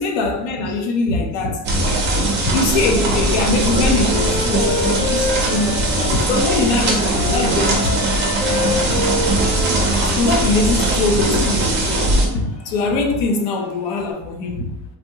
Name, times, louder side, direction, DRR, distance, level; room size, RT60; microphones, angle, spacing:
voice 1, 0.0-2.0 2.5-8.1 8.7-8.8 10.2-14.8, left 3 dB, 80° left, 0.7 m, -22 dB
sound 1, 1.6-12.3, right 1 dB, 25° right, 0.4 m, -20 dB
Cheering, 2.1-14.1, right 1 dB, 35° left, 1.1 m, -36 dB
Wind instrument woodwind instrument, 3.5-6.7 7.0-10.6, left 2 dB, 15° left, 0.7 m, -27 dB
3.5 x 2.1 x 2.7 m
cardioid pair, 175°, 45 cm